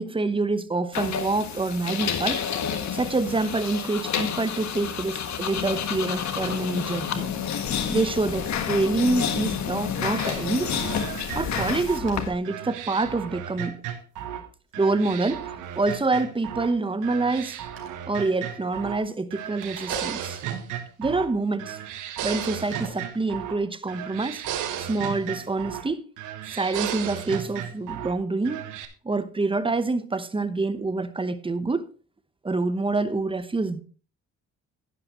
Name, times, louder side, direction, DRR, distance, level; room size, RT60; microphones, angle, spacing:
voice 1, 0.0-2.5 2.9-7.3 7.9-10.7 11.3-13.8 14.8-17.6 18.1-20.4 21.0-21.8 22.2-24.4 24.8-26.0 26.5-28.7 29.0-31.9 32.4-33.8, right 3 dB, 15° right, 0.9 m, -26 dB
sound 1, 0.9-12.3, left 8 dB, 65° left, 1.5 m, -29 dB
sound 2, 6.1-6.8 7.4-7.6 8.0-10.3 10.7-10.9 11.3-11.4 11.5-12.3 12.9-13.0 13.3-13.6 14.0-14.3 14.6-16.9 17.2-17.3 17.5-20.7 21.1-22.1 22.4-23.5, right 3 dB, 40° right, 4.2 m, -47 dB
sound 3, 10.2-14.5 14.7-16.7 17.0-19.0 19.3-21.3 21.6-23.6 23.9-25.9 26.2-28.1 28.4-28.9, right 10 dB, 90° right, 1.3 m, -34 dB
11.0 x 10.5 x 3.0 m
cardioid pair, 90°, 30 cm